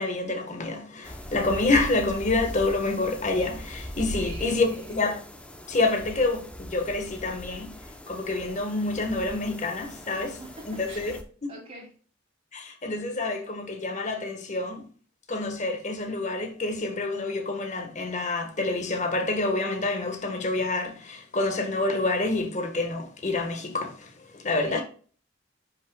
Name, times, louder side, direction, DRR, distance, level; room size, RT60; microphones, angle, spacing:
voice 1, 0.0-5.2 5.7-7.8 8.1-10.4 10.7-11.5 12.5-14.9 15.3-24.8, left 2 dB, 40° left, 1.4 m, -28 dB
sound 1, 1.0-11.2, equal, 5° left, 0.8 m, -40 dB
voice 2, 4.2-5.0 10.2-11.1 11.5-11.9 24.7-24.8, right 1 dB, 30° right, 3.0 m, -44 dB
9.8 x 6.0 x 2.3 m
head